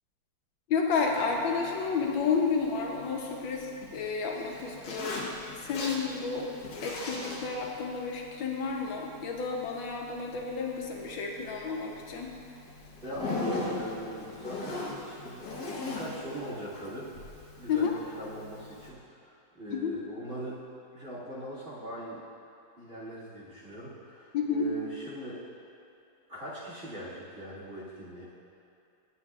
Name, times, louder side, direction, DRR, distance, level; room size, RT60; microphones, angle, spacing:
voice 1, 0.7-5.3 5.6-6.5 6.8-12.3 17.7-17.9 19.7-19.9 24.3-24.7, left 5 dB, 90° left, 0 dB, 1.6 m, -31 dB
Zipper (clothing), 1.0-18.9, left 2 dB, 65° left, 1.6 m, -41 dB
voice 2, 13.0-15.5 15.7-17.1 17.6-20.6 20.9-22.2 22.8-25.4 26.3-28.3, right 1 dB, 40° right, -10 dB, 2.4 m, -40 dB
10.5 x 8.3 x 2.4 m, 2.7 s
omnidirectional pair, 2.0 m